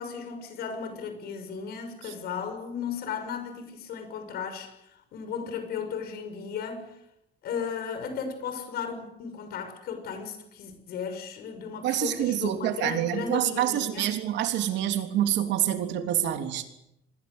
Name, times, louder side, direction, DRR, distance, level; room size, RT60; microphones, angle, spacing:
voice 1, 0.0-6.9 7.4-14.1, left 6 dB, 55° left, 6.3 m, -35 dB
voice 2, 11.8-16.7, right 11 dB, 65° right, 3.3 m, -27 dB
27.0 x 21.0 x 8.1 m
cardioid pair, 170°, 20 cm